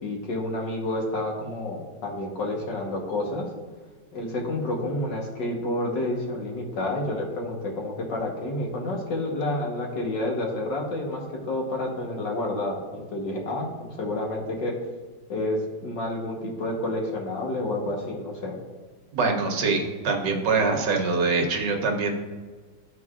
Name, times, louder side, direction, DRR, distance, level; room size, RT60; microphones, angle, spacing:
voice 1, 0.0-3.4 4.1-14.7 15.3-18.6, left 1 dB, 70° left, -1 dB, 1.8 m, -29 dB
voice 2, 19.1-22.1, right 4 dB, 65° right, 2 dB, 1.4 m, -24 dB
14.0 x 4.6 x 2.4 m, 1.4 s
omnidirectional pair, 2.1 m